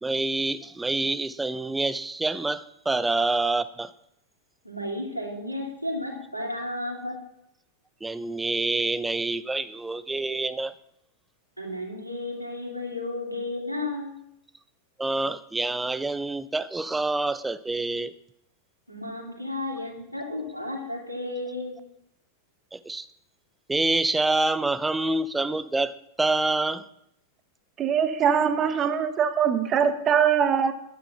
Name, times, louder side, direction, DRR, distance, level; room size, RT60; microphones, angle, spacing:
voice 1, 0.0-3.9 8.0-10.7 15.0-18.1 22.7-23.1 23.7-26.9, right 2 dB, 10° right, 15 dB, 0.7 m, -27 dB
voice 2, 4.6-7.2 11.6-14.2 18.9-21.8, left 2 dB, 90° right, -1 dB, 2.9 m, -33 dB
voice 3, 27.8-30.7, right 7 dB, 30° right, 10 dB, 1.3 m, -22 dB
11.0 x 9.3 x 5.9 m, 0.75 s
figure-of-eight pair, 90°, 0 cm